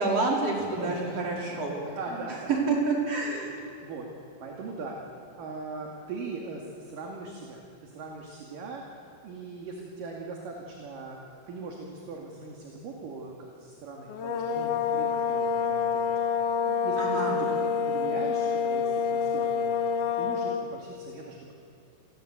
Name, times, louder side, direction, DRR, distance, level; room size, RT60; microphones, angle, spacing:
voice 1, 0.0-1.7 2.7-3.6 17.0-17.4, right 3 dB, 30° right, -2 dB, 5.5 m, -28 dB
voice 2, 0.6-2.5 3.4-4.1 4.4-5.0 5.4-8.8 9.2-21.5, right 3 dB, 50° right, 0 dB, 3.6 m, -40 dB
sound 1, 14.1-20.7, left 6 dB, 70° left, 2.0 m, -27 dB
28.5 x 21.5 x 8.0 m, 2.4 s
omnidirectional pair, 5.5 m